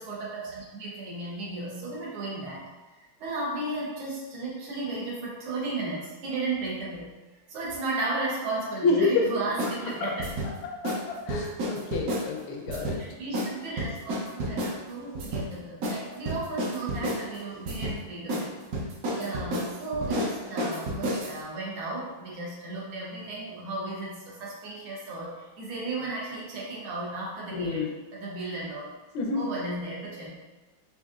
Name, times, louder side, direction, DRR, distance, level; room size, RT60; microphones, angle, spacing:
voice 1, 0.0-2.6 3.2-7.2 7.5-10.2 13.0-18.6 19.1-27.9 28.1-29.0 29.3-30.4, right 2 dB, 85° right, -5 dB, 1.7 m, -34 dB
voice 2, 8.8-9.3 10.0-10.1 10.8-13.0 27.5-27.9 29.1-29.4, left 3 dB, 90° left, 0 dB, 1.5 m, -28 dB
sound 1, 9.6-9.8 10.2-10.5 10.8-11.0 11.3-12.3 12.7-13.0 13.3-13.5 13.8-14.7 15.1-15.5 15.8-16.0 16.2-17.2 17.7-18.0 18.3-18.4 18.7-21.4, right 1 dB, 70° right, 0.9 m, -30 dB
4.9 x 2.7 x 2.4 m, 1.2 s
omnidirectional pair, 2.2 m